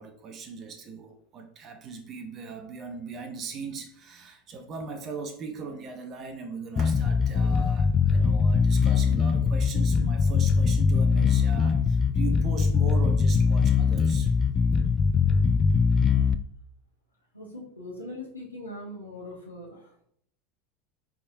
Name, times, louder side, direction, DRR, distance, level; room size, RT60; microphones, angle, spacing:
voice 1, 0.0-14.3, right 4 dB, 35° right, 0.7 m, -39 dB
Bass guitar, 6.8-16.4, left 5 dB, 25° left, 0.3 m, -22 dB
voice 2, 17.3-20.1, left 1 dB, 90° left, 1.1 m, -41 dB
5.2 x 3.5 x 2.7 m
figure-of-eight pair, 80°, 0 cm